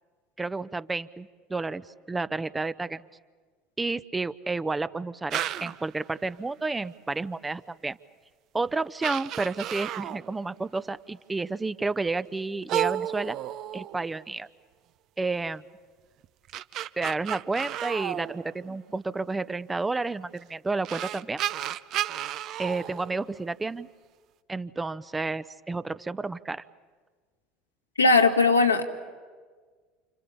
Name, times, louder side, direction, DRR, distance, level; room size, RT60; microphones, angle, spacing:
voice 1, 0.4-3.0 3.8-8.0 8.5-13.4 13.7-14.5 15.2-15.6 17.0-21.4 22.6-23.9 24.5-26.6, right 3 dB, 15° right, 15 dB, 0.8 m, -31 dB
sound 1, 5.3-5.9 7.9-8.0 8.7-8.8 9.0-10.3 12.7-14.3 16.2-19.0 20.4-20.5 20.8-23.7, right 12 dB, 50° right, 0.8 m, -33 dB
voice 2, 28.0-28.8, left 3 dB, 90° left, 3 dB, 2.0 m, -19 dB
29.5 x 28.0 x 7.1 m, 1.5 s
figure-of-eight pair, 65°, 0 cm